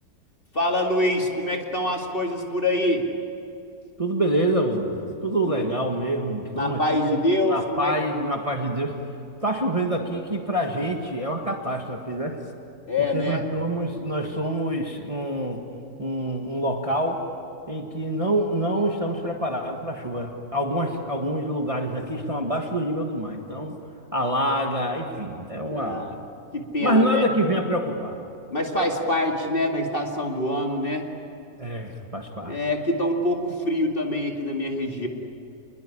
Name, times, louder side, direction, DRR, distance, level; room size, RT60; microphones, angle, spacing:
voice 1, 0.5-3.1 6.5-7.9 12.9-13.4 20.8-20.9 25.7-26.2 26.5-27.2 28.5-31.1 32.5-35.1, left 1 dB, 35° left, 1 dB, 2.6 m, -25 dB
voice 2, 4.0-9.0 9.4-12.4 13.0-15.6 16.0-17.2 17.7-23.8 24.1-26.1 26.8-28.2 31.6-32.6, right 1 dB, 20° right, 2 dB, 1.7 m, -26 dB
27.0 x 21.5 x 9.9 m, 2.6 s
omnidirectional pair, 1.7 m